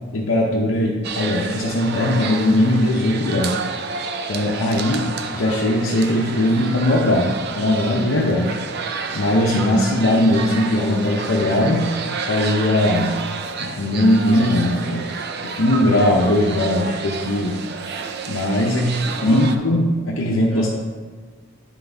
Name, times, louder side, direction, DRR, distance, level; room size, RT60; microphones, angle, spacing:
voice 1, 0.1-3.6 4.3-8.5 9.1-12.0 12.3-13.2 13.6-15.1 15.4-17.6 18.3-18.8 19.2-20.7, left 1 dB, 65° left, -2 dB, 0.7 m, -19 dB
washington americanhistory lobby, 1.0-19.6, right 5 dB, 50° right, 0.5 m, -30 dB
voice 2, 4.8-5.1 18.7-19.8 20.5-20.7, right 1 dB, ahead, -12 dB, 1.7 m, -30 dB
9.9 x 3.9 x 3.4 m, 1.5 s
head